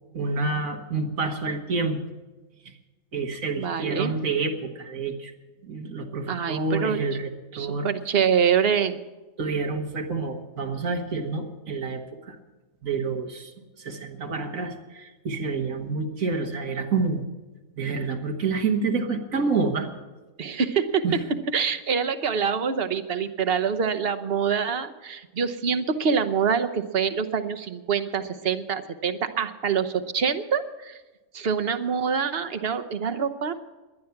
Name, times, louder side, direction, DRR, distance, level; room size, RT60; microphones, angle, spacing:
voice 1, 0.1-2.0 2.7-2.8 3.1-5.3 5.6-7.9 9.4-12.4 12.8-17.2 17.8-19.9 21.0-21.2, right 4 dB, 85° right, 3 dB, 1.9 m, -28 dB
voice 2, 3.5-4.1 6.3-7.0 7.5-9.0 20.4-21.0 21.5-31.0 31.3-33.5, right 7 dB, 50° right, 9 dB, 1.1 m, -25 dB
19.5 x 11.0 x 5.9 m, 1.2 s
omnidirectional pair, 1.4 m